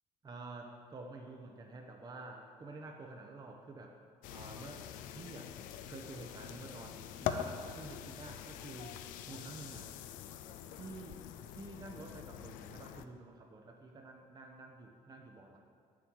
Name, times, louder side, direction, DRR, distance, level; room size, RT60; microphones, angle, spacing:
voice 1, 0.2-3.9 4.3-4.9 5.1-5.5 5.9-9.9 10.7-11.2 11.5-15.6, right 3 dB, 30° right, 2 dB, 0.8 m, -49 dB
sound 1, 4.2-13.1, left 10 dB, 85° left, 0.4 m, -44 dB
8.0 x 7.5 x 4.6 m, 2.2 s
cardioid pair, 100°, 13 cm